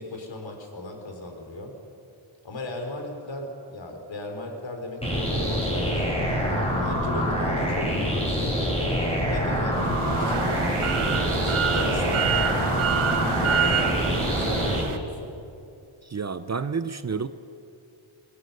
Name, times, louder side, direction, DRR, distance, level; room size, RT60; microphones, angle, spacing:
voice 1, 0.0-1.7 2.4-6.2 6.8-8.9 9.3-10.6 11.2-12.7 13.0-14.1 14.3-15.4, left 2 dB, 65° left, 3 dB, 3.6 m, -37 dB
sound 1, 5.0-14.8, equal, 10° left, 5.4 m, -25 dB
sound 2, 9.7-15.0, right 7 dB, 90° right, 1.2 m, -27 dB
voice 2, 16.1-17.3, right 5 dB, 35° right, 12 dB, 0.6 m, -29 dB
23.0 x 17.5 x 6.6 m, 2.5 s
wide cardioid pair, 100°, 48 cm